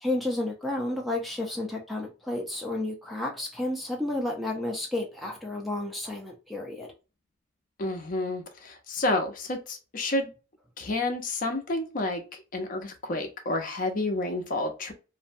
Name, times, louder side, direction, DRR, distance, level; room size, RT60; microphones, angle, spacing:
voice 1, 0.0-6.9, left 1 dB, ahead, 0.5 m, -31 dB
voice 2, 7.8-10.3 10.8-14.9, left 2 dB, 45° left, 0.6 m, -30 dB
2.6 x 2.1 x 2.5 m
head